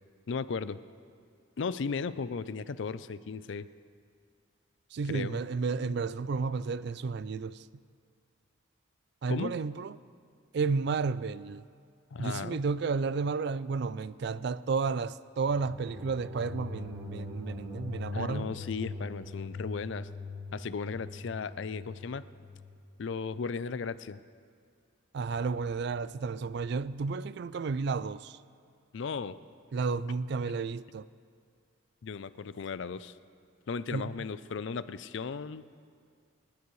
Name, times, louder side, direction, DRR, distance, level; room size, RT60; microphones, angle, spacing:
voice 1, 0.3-0.8 1.6-3.7 5.1-5.4 9.3-9.6 12.1-12.6 18.1-20.1 20.5-22.2 23.0-24.2 28.9-29.4 32.0-33.2 33.7-35.6, left 5 dB, 60° left, 0.4 m, -36 dB
voice 2, 4.9-7.6 9.2-9.9 10.5-11.6 12.2-18.5 25.1-28.4 29.7-31.0 33.9-34.2, right 4 dB, 55° right, 0.3 m, -32 dB
sound 1, 15.5-22.7, left 3 dB, 25° right, 4.0 m, -42 dB
28.0 x 10.5 x 3.2 m
head